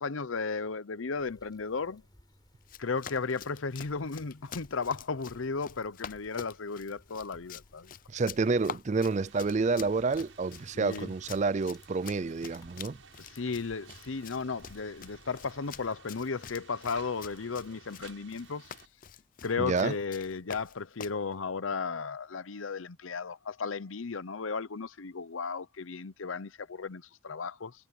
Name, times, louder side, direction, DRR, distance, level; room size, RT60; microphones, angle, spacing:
voice 1, 0.0-2.0 2.8-7.9 10.7-11.1 13.3-18.7 19.4-27.7, left 4 dB, 85° left, 0.8 m, -35 dB
sound 1, 1.2-15.9, equal, 20° left, 6.0 m, -61 dB
Run, 2.6-21.2, left 7 dB, 45° left, 0.6 m, -47 dB
voice 2, 8.1-13.0 19.6-19.9, right 4 dB, 35° right, 0.4 m, -29 dB
sound 2, 9.1-18.9, right 5 dB, 80° right, 7.5 m, -55 dB
head